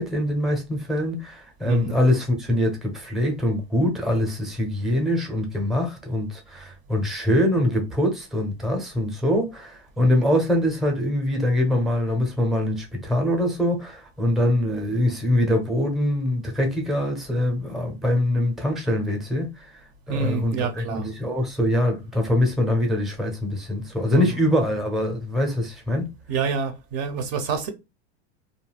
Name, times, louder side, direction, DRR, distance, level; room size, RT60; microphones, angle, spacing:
voice 1, 0.0-19.8 20.1-26.1, left 1 dB, ahead, 0.6 m, -23 dB
voice 2, 1.7-2.0 20.1-21.1 24.1-24.2 26.3-27.7, right 6 dB, 45° right, 0.6 m, -27 dB
2.4 x 2.1 x 3.3 m
supercardioid pair, 135°, 34 cm